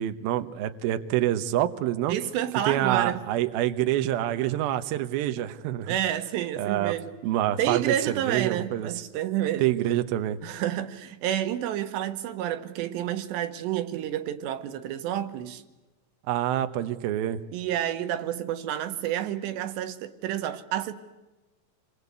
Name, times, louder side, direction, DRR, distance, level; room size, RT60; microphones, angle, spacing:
voice 1, 0.0-2.2 2.6-5.9 6.6-7.0 7.2-8.9 9.6-10.4 16.3-17.4, right 13 dB, 85° right, 2.1 m, -26 dB
voice 2, 2.1-3.2 5.9-7.1 7.6-9.7 10.4-15.6 17.5-20.9, right 11 dB, 70° right, 3.1 m, -29 dB
27.5 x 23.5 x 8.3 m
omnidirectional pair, 5.9 m